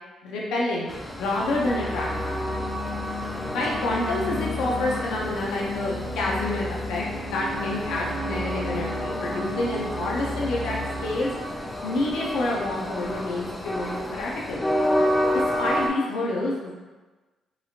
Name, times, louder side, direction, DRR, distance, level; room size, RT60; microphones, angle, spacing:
voice 1, 0.2-0.9 1.2-2.4 3.5-11.3 11.8-14.7 15.3-16.7, left 2 dB, 85° left, -4 dB, 0.5 m, -28 dB
Train, 0.9-15.9, equal, 15° left, 0.4 m, -30 dB
sound 1, 1.3-12.9, left 2 dB, 50° right, 0.8 m, -34 dB
2.9 x 2.7 x 2.4 m, 1.2 s
cardioid pair, 90°, 0 cm